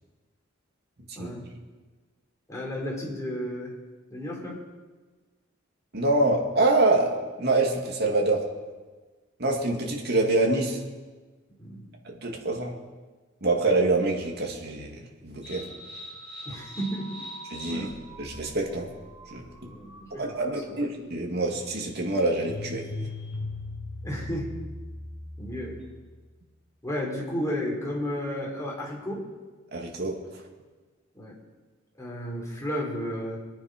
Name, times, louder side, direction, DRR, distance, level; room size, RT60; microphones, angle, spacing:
voice 1, 1.2-1.5 2.5-3.7 4.1-4.6 11.6-11.8 16.5-17.2 17.7-18.0 19.6-20.9 24.0-24.6 25.4-25.8 26.8-29.2 31.1-31.4 32.0-33.4, equal, 15° left, -3 dB, 3.8 m, -33 dB
voice 2, 5.9-7.1 7.4-8.4 9.4-10.8 12.1-12.7 13.4-14.9 15.2-15.6 17.5-17.9 18.2-18.9 19.3-19.4 20.2-22.8 29.7-30.1, right 2 dB, 55° right, 0 dB, 2.3 m, -25 dB
sound 1, 15.4-26.0, left 1 dB, 5° right, 6.7 m, -41 dB
23.5 x 9.4 x 5.2 m, 1.3 s
head